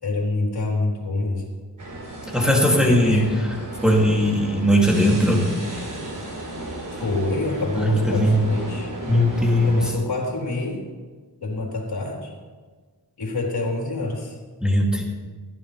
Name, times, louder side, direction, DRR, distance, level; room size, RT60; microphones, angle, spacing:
voice 1, 0.0-1.4 2.8-3.2 7.0-8.9 9.6-10.8 11.4-12.3 13.2-14.4, left 2 dB, 70° left, -2 dB, 4.2 m, -26 dB
sound 1, 1.8-9.9, right 1 dB, 50° right, 4.7 m, -34 dB
voice 2, 2.3-3.5 3.8-5.5 7.8-8.4 9.1-9.9 14.6-15.0, equal, ahead, -3 dB, 2.9 m, -19 dB
20.5 x 15.0 x 3.5 m, 1.4 s
wide cardioid pair, 95°, 39 cm